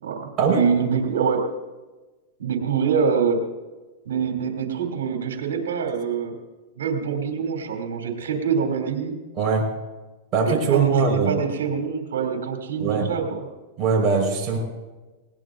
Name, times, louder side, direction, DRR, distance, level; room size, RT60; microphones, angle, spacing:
voice 1, 0.0-1.4 2.4-3.4 4.0-6.3 6.8-9.2 10.4-13.4, right 6 dB, 85° right, 2 dB, 2.8 m, -25 dB
voice 2, 9.4-9.7 10.3-11.4 12.8-13.1 13.8-14.6, right 5 dB, 35° right, 0 dB, 4.6 m, -21 dB
20.0 x 18.5 x 2.6 m, 1.2 s
hypercardioid pair, 120°, 0 cm